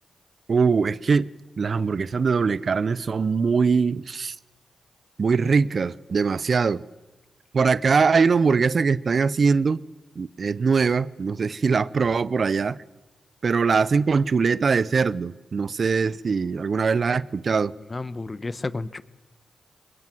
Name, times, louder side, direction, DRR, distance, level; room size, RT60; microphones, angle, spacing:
voice 1, 0.5-1.3 1.6-4.3 5.2-6.8 7.5-9.8 10.2-12.8 13.4-17.7, right 5 dB, 60° right, 0.7 m, -22 dB
voice 2, 17.9-19.0, left 3 dB, 35° left, 1.1 m, -31 dB
22.5 x 20.5 x 7.8 m
supercardioid pair, 40°, 0 cm